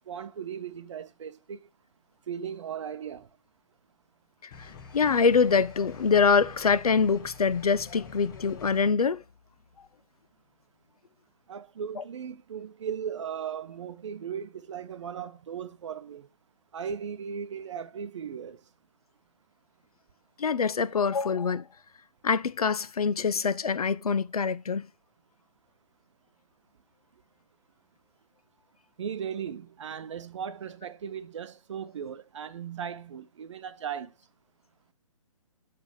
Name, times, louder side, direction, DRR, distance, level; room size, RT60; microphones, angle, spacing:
voice 1, 0.0-1.6 2.3-3.3 11.5-16.3 16.7-18.6 29.0-34.1, right 7 dB, 55° right, 0.7 m, -37 dB
sound 1, 4.5-8.9, left 5 dB, 35° left, 1.3 m, -47 dB
voice 2, 4.6-9.2 12.0-12.1 20.4-21.7 22.2-24.9, left 5 dB, 85° left, 0.5 m, -25 dB
8.1 x 3.4 x 4.8 m
figure-of-eight pair, 140°, 19 cm